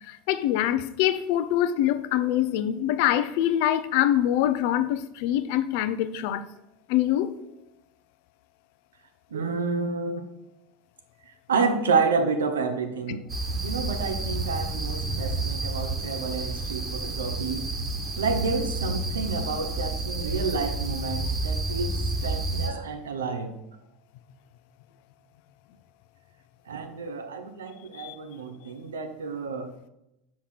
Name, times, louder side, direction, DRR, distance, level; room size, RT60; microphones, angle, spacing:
voice 1, 0.1-6.4 6.9-7.3 13.1-13.2 28.0-28.1, left 12 dB, 65° left, 0.5 m, -24 dB
voice 2, 9.3-10.2 11.5-13.2 13.5-17.6 18.2-23.5 26.7-29.7, right 4 dB, 85° right, 0.9 m, -29 dB
sound 1, 13.3-22.7, right 2 dB, 30° right, 1.4 m, -30 dB
5.8 x 4.3 x 5.7 m
hypercardioid pair, 80°, 0 cm